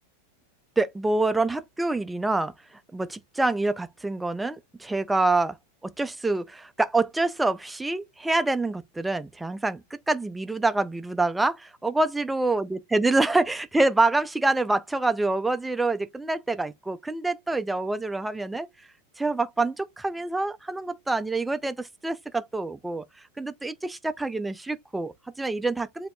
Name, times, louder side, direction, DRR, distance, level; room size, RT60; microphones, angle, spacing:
voice 1, 0.8-5.6 5.8-18.7 19.2-23.0 23.4-26.1, right 2 dB, 5° right, 0.4 m, -26 dB
7.7 x 2.7 x 2.3 m
figure-of-eight pair, 90°, 0 cm